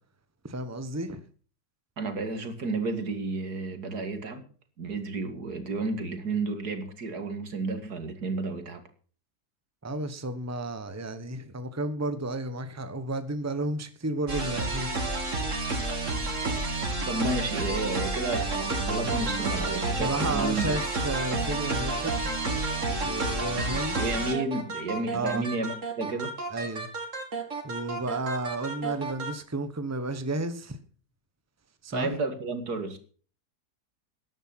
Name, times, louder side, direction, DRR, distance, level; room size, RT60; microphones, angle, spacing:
voice 1, 0.4-1.2 9.8-14.9 18.7-19.1 20.0-22.1 23.0-24.0 25.1-25.4 26.5-26.9 27.6-30.8 31.8-32.1, right 2 dB, 10° right, 1.2 m, -32 dB
voice 2, 2.0-4.4 4.8-8.8 17.1-20.7 24.0-26.3 31.9-33.0, right 3 dB, 80° right, 2.7 m, -31 dB
sound 1, 14.3-29.3, right 2 dB, 50° right, 2.8 m, -30 dB
13.5 x 10.5 x 6.0 m
omnidirectional pair, 1.7 m